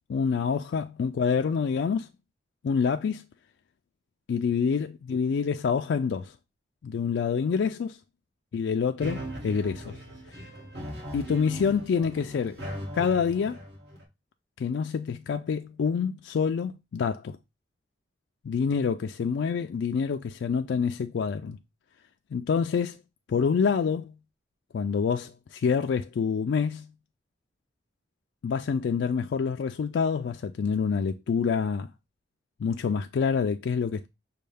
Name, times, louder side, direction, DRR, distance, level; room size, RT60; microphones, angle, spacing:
voice 1, 0.1-2.1 2.6-3.2 4.3-6.3 6.8-8.0 8.5-10.0 11.1-12.6 12.9-13.6 14.6-17.4 18.4-21.6 22.3-23.0 23.3-24.2 24.7-26.9 28.4-31.9 32.6-34.1, left 6 dB, 75° left, 0.3 m, -27 dB
sound 1, 9.0-14.0, equal, 65° right, 1.8 m, -39 dB
6.4 x 2.3 x 3.4 m
head